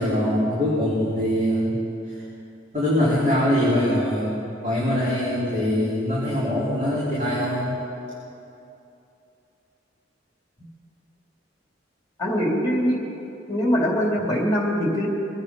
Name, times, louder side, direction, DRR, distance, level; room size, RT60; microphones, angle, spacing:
voice 1, 0.0-1.8 2.1-2.2 2.7-7.8, equal, 35° right, -11 dB, 4.2 m, -23 dB
voice 2, 12.2-13.0 13.5-15.1, equal, 20° left, -3 dB, 3.3 m, -22 dB
24.0 x 9.0 x 5.6 m, 2.8 s
head